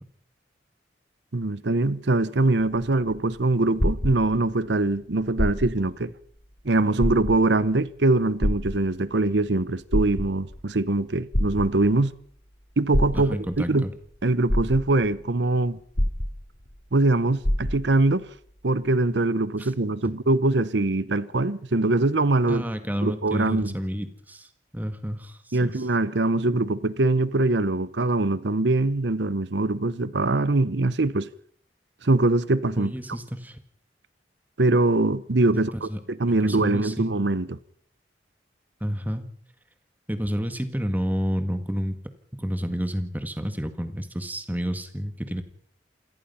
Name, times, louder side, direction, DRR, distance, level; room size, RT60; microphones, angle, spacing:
voice 1, 1.3-6.1 6.6-12.1 12.8-13.4 13.7-13.9 14.2-15.8 16.9-18.3 18.6-22.6 23.0-23.7 25.5-31.3 32.0-32.9 34.6-37.6, right 2 dB, 75° right, 0.9 m, -23 dB
sound 1, 2.7-4.7 5.3-5.9 6.4-6.5 6.9-7.7 8.4-9.2 9.7-10.6 11.3-12.1 12.9-13.6 14.1-14.2 14.5-15.2 15.9-16.8 17.0-17.1 17.4-18.1 18.8-18.9, equal, 60° left, 3.7 m, -26 dB
voice 2, 13.1-13.9 19.6-19.7 22.5-24.5 24.7-25.9 32.8-33.6 35.5-35.6 35.9-36.0 36.4-37.2 38.8-39.3 40.1-42.0 42.3-45.4, equal, 10° right, 1.8 m, -30 dB
27.5 x 17.5 x 5.7 m
head